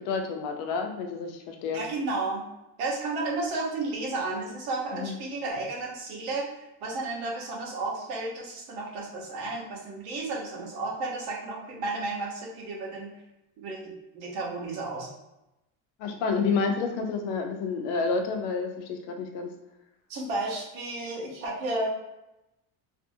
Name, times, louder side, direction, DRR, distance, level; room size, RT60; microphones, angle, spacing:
voice 1, 0.0-1.8 4.9-5.1 16.0-19.5, left 4 dB, 80° left, 4 dB, 0.6 m, -29 dB
voice 2, 1.7-2.4 2.8-6.4 6.8-13.1 13.6-15.1 20.1-21.9, right 2 dB, 75° right, -2 dB, 1.0 m, -32 dB
2.6 x 2.5 x 2.6 m, 0.92 s
cardioid pair, 170°, 38 cm